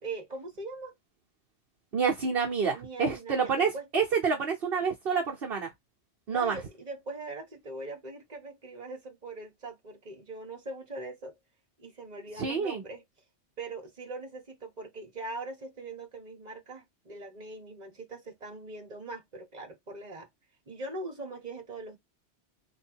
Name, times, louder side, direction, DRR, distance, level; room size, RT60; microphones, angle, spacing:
voice 1, 0.0-0.9 2.7-3.8 6.3-11.3 11.8-13.0 13.6-20.3 20.7-22.0, right 2 dB, 40° right, 1.4 m, -41 dB
voice 2, 1.9-5.7 6.3-6.6 12.4-12.8, right 5 dB, 60° right, 1.2 m, -28 dB
3.7 x 2.7 x 4.4 m
omnidirectional pair, 1.1 m